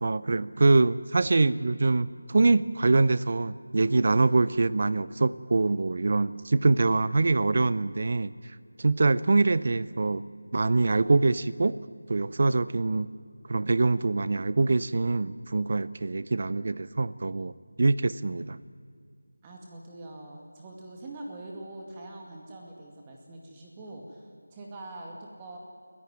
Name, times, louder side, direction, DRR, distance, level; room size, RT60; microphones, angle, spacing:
voice 1, 0.0-8.3 8.8-10.2 10.5-11.8 12.1-13.1 13.5-18.6, right 3 dB, 45° right, 17 dB, 0.7 m, -24 dB
voice 2, 19.4-25.6, right 2 dB, 15° right, 0 dB, 2.2 m, -43 dB
26.5 x 15.0 x 9.6 m, 2.2 s
figure-of-eight pair, 170°, 0 cm